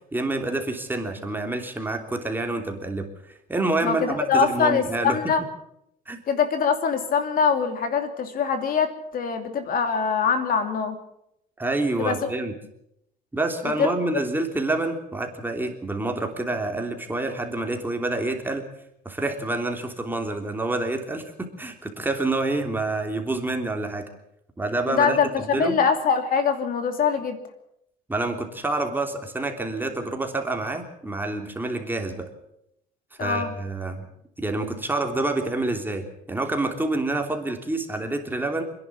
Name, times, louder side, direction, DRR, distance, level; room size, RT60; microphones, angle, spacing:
voice 1, 0.1-3.1 3.5-5.2 6.1-6.2 11.6-12.5 13.3-18.6 19.0-24.0 24.6-25.8 28.1-32.3 33.2-34.0 34.4-38.6, right 2 dB, 10° right, 3 dB, 3.2 m, -27 dB
voice 2, 3.8-5.4 6.3-11.0 12.0-12.2 13.6-13.9 24.9-27.4 33.2-33.5, left 6 dB, 55° left, 7 dB, 2.8 m, -23 dB
28.0 x 11.0 x 8.5 m, 0.79 s
cardioid pair, 110°, 17 cm